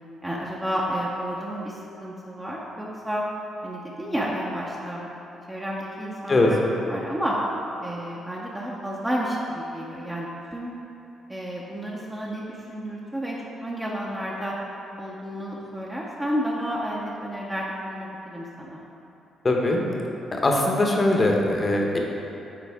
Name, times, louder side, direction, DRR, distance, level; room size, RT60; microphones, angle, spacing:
voice 1, 0.2-3.3 3.6-5.0 5.5-6.6 6.9-7.4 7.8-10.7 11.3-14.6 15.0-18.8, equal, 10° right, -5 dB, 0.8 m, -31 dB
voice 2, 19.4-19.8 20.3-22.0, left 2 dB, 30° left, 0 dB, 1.0 m, -21 dB
9.6 x 4.0 x 3.6 m, 3.0 s
cardioid pair, 90°, 0 cm